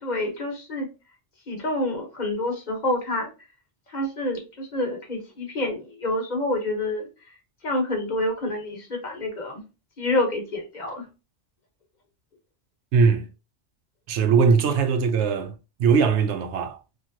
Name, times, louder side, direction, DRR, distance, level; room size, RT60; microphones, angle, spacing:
voice 1, 0.0-0.9 1.5-3.3 3.9-7.1 7.6-9.6 10.0-11.0, left 1 dB, 45° left, 1.0 m, -27 dB
voice 2, 12.9-13.3 14.1-15.5 15.8-16.8, right 5 dB, 85° right, 0.9 m, -20 dB
3.0 x 2.5 x 2.6 m
omnidirectional pair, 1.1 m